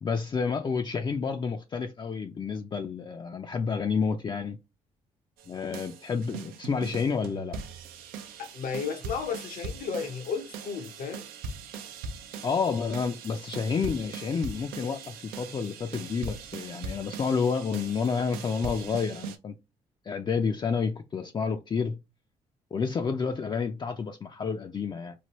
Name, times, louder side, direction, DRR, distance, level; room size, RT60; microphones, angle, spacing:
voice 1, 0.0-4.6 5.5-7.6 12.4-19.5 20.1-22.0 22.7-25.1, left 5 dB, 30° left, 0.4 m, -30 dB
sound 1, 5.4-19.4, right 5 dB, 80° right, 0.4 m, -41 dB
voice 2, 8.4-11.3, left 6 dB, 70° left, 0.7 m, -33 dB
3.1 x 2.2 x 2.9 m
supercardioid pair, 60°, 15 cm